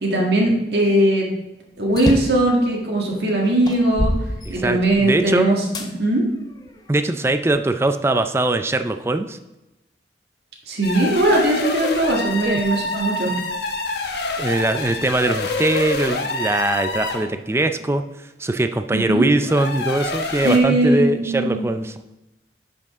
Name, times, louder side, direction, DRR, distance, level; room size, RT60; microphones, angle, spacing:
voice 1, 0.0-1.3 1.8-4.1 4.5-5.6 6.0-6.2 10.7-13.3 18.9-19.3 20.4-21.6, right 1 dB, 70° right, -2 dB, 1.7 m, -19 dB
sound 1, 1.9-2.5 3.1-3.2 3.7-5.1 5.7-5.9 6.6-7.7, left 1 dB, 25° left, 0.7 m, -26 dB
voice 2, 4.4-5.5 6.9-9.4 12.5-12.6 14.4-18.0 18.4-21.9, right 2 dB, 15° right, 9 dB, 0.4 m, -21 dB
sound 2, 10.8-17.3 19.4-20.6, left 2 dB, 70° left, 1.1 m, -27 dB
10.5 x 5.3 x 3.6 m, 0.98 s
head